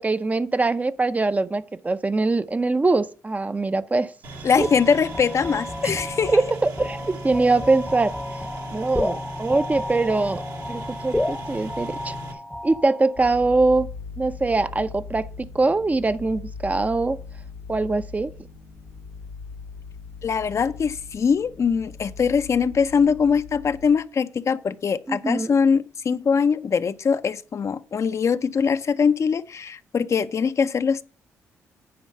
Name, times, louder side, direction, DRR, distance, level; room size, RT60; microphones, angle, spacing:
voice 1, 0.0-4.1 4.6-4.7 5.8-6.0 6.3-8.1 8.7-10.4 10.7-12.2 12.6-13.9 14.2-17.2 17.7-18.3 25.1-25.5, right 3 dB, 25° right, 0.5 m, -23 dB
sound 1, 4.2-12.3, right 1 dB, 70° right, 1.7 m, -37 dB
voice 2, 4.4-6.4 20.2-31.0, left 6 dB, 50° left, 0.5 m, -22 dB
sound 2, 4.6-13.3, left 1 dB, 10° left, 0.8 m, -32 dB
sound 3, 13.2-23.9, left 5 dB, 90° left, 1.4 m, -40 dB
9.4 x 4.4 x 6.6 m
supercardioid pair, 60°, 6 cm